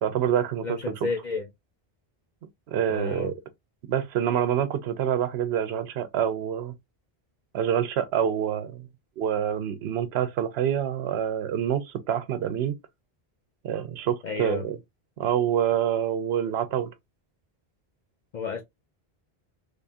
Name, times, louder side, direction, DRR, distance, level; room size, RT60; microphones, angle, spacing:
voice 1, 0.0-0.8 2.7-3.3 3.9-6.8 7.5-8.9 9.2-12.8 13.6-14.8 15.2-16.9, right 9 dB, 85° right, 0.9 m, -26 dB
voice 2, 0.6-1.5 2.9-3.3 14.2-14.7 18.3-18.6, left 4 dB, 50° left, 0.7 m, -31 dB
3.5 x 3.5 x 2.5 m
omnidirectional pair, 1.0 m